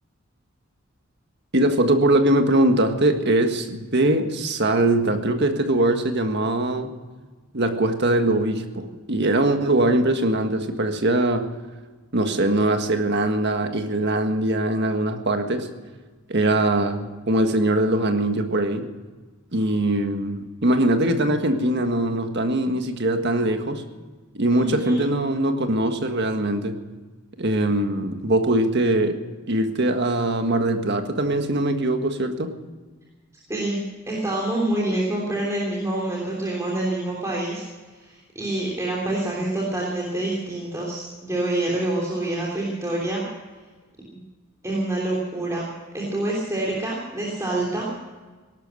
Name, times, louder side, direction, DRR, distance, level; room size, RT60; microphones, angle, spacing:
voice 1, 1.5-6.9 7.5-11.5 12.1-15.7 16.3-18.9 19.5-23.8 24.3-26.8 27.4-29.2 29.5-32.5, right 1 dB, 55° right, 6 dB, 1.7 m, -22 dB
voice 2, 24.5-25.0 33.5-37.6 37.9-43.2 44.6-47.9, right 1 dB, 15° right, -4 dB, 3.2 m, -27 dB
18.0 x 12.5 x 6.4 m, 1.4 s
head